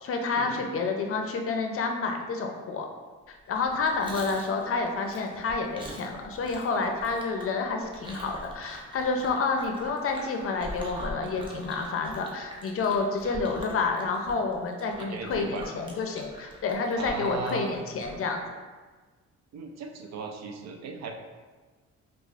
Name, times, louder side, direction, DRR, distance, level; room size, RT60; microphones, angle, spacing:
voice 1, 0.0-2.9 3.3-18.4, left 4 dB, 50° left, 3 dB, 0.5 m, -29 dB
Chewing mastication, 3.5-18.3, equal, 15° right, 0.7 m, -43 dB
voice 2, 15.0-15.7 17.0-17.7 19.5-21.1, right 4 dB, 60° right, 4 dB, 0.5 m, -37 dB
4.7 x 2.4 x 2.4 m, 1.4 s
cardioid pair, 90°, 30 cm